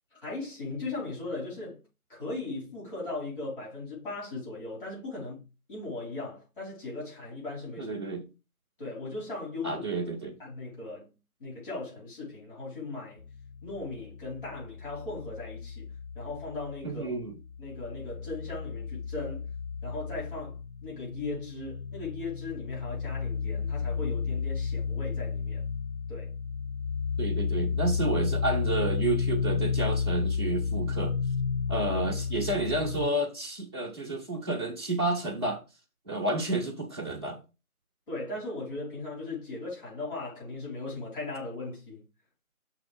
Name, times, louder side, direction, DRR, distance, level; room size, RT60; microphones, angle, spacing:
voice 1, 0.1-1.8 2.1-5.4 5.7-8.0 8.8-10.1 10.4-11.1 11.4-13.3 13.6-15.9 16.1-17.2 17.6-19.5 19.8-25.7 26.1-26.3 38.1-42.0, left 2 dB, 35° left, 4.3 m, -38 dB
voice 2, 7.8-8.2 9.6-10.4 16.8-17.4 27.2-31.1 31.7-35.6 36.0-37.4, right 2 dB, 15° right, 1.0 m, -30 dB
sound 1, 13.2-17.0 17.3-33.1, left 5 dB, 80° left, 0.6 m, -32 dB
6.2 x 3.9 x 5.0 m
figure-of-eight pair, 155°, 44 cm